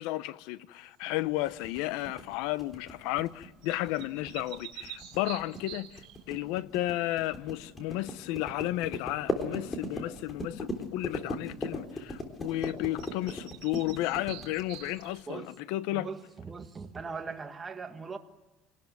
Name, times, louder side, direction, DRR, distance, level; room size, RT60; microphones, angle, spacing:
voice 1, 0.0-16.1, left 16 dB, 75° left, 0.9 m, -33 dB
sound 1, 1.5-15.2, left 2 dB, 20° left, 3.8 m, -38 dB
sound 2, 1.5-1.8 3.6-6.2 12.6-12.7 13.0-15.4, right 14 dB, 70° right, 2.7 m, -47 dB
voice 2, 15.9-18.2, right 5 dB, 20° right, 1.7 m, -40 dB
27.0 x 19.0 x 9.4 m
cardioid pair, 145°, 0 cm